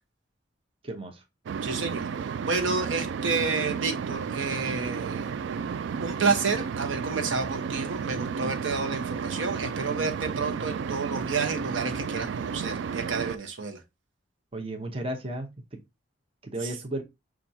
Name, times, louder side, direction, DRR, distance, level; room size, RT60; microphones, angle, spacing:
voice 1, 0.8-1.2 14.5-15.5 16.4-17.0, right 1 dB, 30° right, 0.7 m, -33 dB
sound 1, 1.5-13.4, right 6 dB, 65° right, 0.3 m, -32 dB
voice 2, 1.6-5.3 6.0-13.8, right 4 dB, 85° right, 0.8 m, -30 dB
5.8 x 2.4 x 2.6 m
head